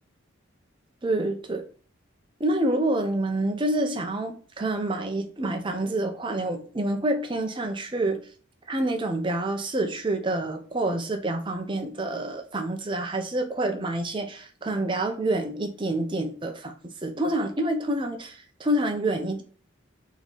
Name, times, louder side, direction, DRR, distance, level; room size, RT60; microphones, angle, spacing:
voice 1, 1.0-1.6 2.4-8.2 8.7-16.7 17.0-19.4, right 1 dB, 25° right, 5 dB, 0.6 m, -27 dB
3.9 x 3.0 x 4.0 m, 0.42 s
head